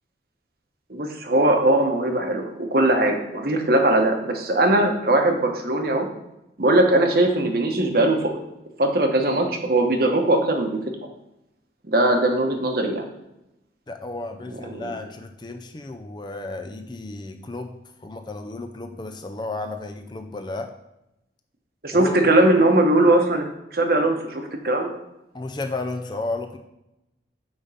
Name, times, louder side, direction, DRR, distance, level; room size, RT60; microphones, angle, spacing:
voice 1, 0.9-6.1 6.6-8.3 8.8-10.8 11.9-13.1 14.7-14.9 21.8-24.9, right 1 dB, 50° right, 3 dB, 1.0 m, -20 dB
voice 2, 13.9-20.7 21.9-22.2 25.3-26.6, left 2 dB, 25° left, 6 dB, 0.5 m, -33 dB
8.8 x 3.6 x 5.6 m, 0.89 s
head